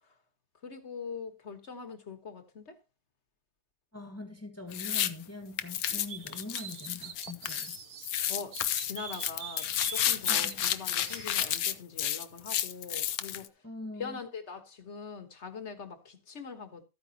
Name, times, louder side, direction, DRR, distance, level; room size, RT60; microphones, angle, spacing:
voice 1, 0.6-2.8 8.2-13.5 14.0-16.8, left 5 dB, 45° left, 1.6 m, -42 dB
voice 2, 3.9-7.8 10.3-10.6 13.6-14.2, left 2 dB, 10° left, 1.5 m, -43 dB
sound 1, 4.7-5.1 5.6-7.8 8.0-13.5, left 10 dB, 65° left, 1.2 m, -31 dB
sound 2, 6.1-8.1 8.5-11.5, right 7 dB, 55° right, 1.3 m, -44 dB
13.5 x 9.4 x 2.9 m
omnidirectional pair, 1.8 m